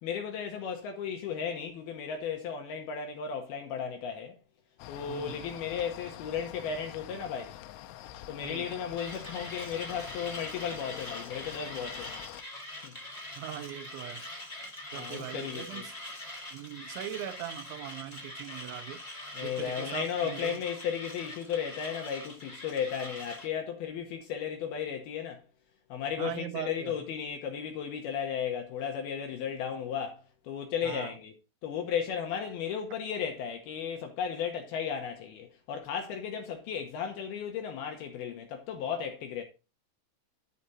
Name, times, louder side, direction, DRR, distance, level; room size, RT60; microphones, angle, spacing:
voice 1, 0.0-4.4 4.9-7.6 8.3-12.2 12.8-12.9 14.9-15.8 19.3-25.4 25.9-31.3 31.6-39.4, left 7 dB, 70° left, 2.4 m, -35 dB
sound 1, 4.8-12.4, left 13 dB, 90° left, 3.1 m, -46 dB
voice 2, 5.1-5.5 8.4-8.7 13.4-14.2 14.9-15.9 16.5-19.0 19.4-20.6 26.2-27.0 30.8-31.1, right 12 dB, 80° right, 3.1 m, -40 dB
Mechanisms, 9.0-23.5, left 1 dB, 30° left, 0.6 m, -43 dB
11.0 x 5.1 x 4.0 m
omnidirectional pair, 5.4 m